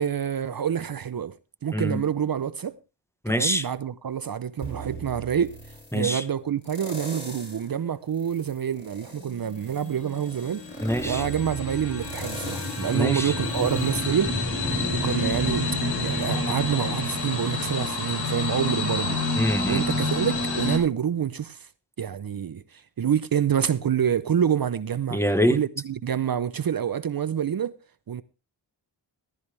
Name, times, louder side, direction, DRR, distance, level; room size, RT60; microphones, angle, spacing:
voice 1, 0.0-1.4 1.6-2.8 3.3-5.5 5.9-10.6 11.0-14.3 14.9-15.7 16.0-19.2 19.7-21.7 22.0-25.2 25.5-27.8 28.1-28.2, right 8 dB, 50° right, 0.7 m, -27 dB
voice 2, 3.2-3.6 5.9-6.2 10.8-11.2 12.9-13.3 19.3-19.8 25.1-25.6, equal, 5° left, 1.1 m, -24 dB
sound 1, 4.6-6.0 6.6-7.7 8.2-14.9 15.3-15.4, right 2 dB, 25° left, 5.3 m, -39 dB
sound 2, 9.2-20.8, left 2 dB, 60° left, 4.9 m, -28 dB
14.0 x 13.0 x 3.4 m
wide cardioid pair, 80°, 45 cm